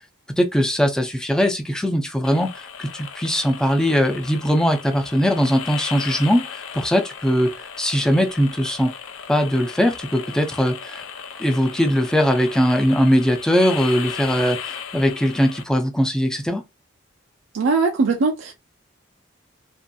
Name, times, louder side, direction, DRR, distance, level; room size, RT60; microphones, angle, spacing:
voice 1, 0.4-8.9 9.3-11.0 11.4-16.6, equal, 5° left, 0.3 m, -20 dB
sound 1, 2.2-15.6, left 7 dB, 85° left, 0.4 m, -36 dB
voice 2, 17.5-18.5, right 4 dB, 85° right, 0.4 m, -20 dB
2.6 x 2.5 x 2.3 m
head